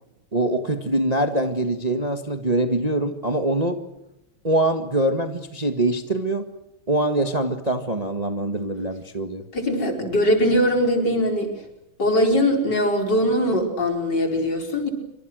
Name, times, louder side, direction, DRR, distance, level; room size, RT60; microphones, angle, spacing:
voice 1, 0.3-3.8 4.4-6.4 6.9-9.4, right 1 dB, 20° right, 6 dB, 1.6 m, -23 dB
voice 2, 9.5-11.5 12.0-14.9, equal, 50° left, 4 dB, 5.3 m, -21 dB
27.0 x 25.5 x 6.4 m, 0.87 s
omnidirectional pair, 2.3 m